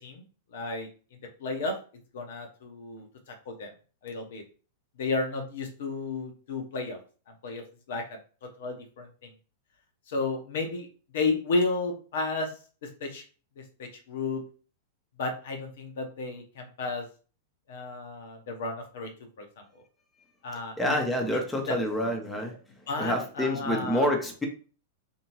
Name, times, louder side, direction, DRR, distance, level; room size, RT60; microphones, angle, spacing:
voice 1, 0.5-0.9 1.4-1.8 2.1-3.7 4.0-4.4 5.0-7.0 7.4-8.2 8.6-9.3 10.1-10.9 11.1-12.5 12.8-13.2 13.6-14.4 15.2-17.1 17.7-19.1 19.4-19.5 19.7-19.8 20.4-20.9 21.7-21.8 22.9-24.1, left 3 dB, 55° left, 4 dB, 0.8 m, -32 dB
voice 2, 20.8-22.6 23.0-24.5, left 1 dB, 10° left, 2 dB, 0.8 m, -27 dB
3.4 x 2.8 x 2.9 m, 0.37 s
figure-of-eight pair, 100°, 0 cm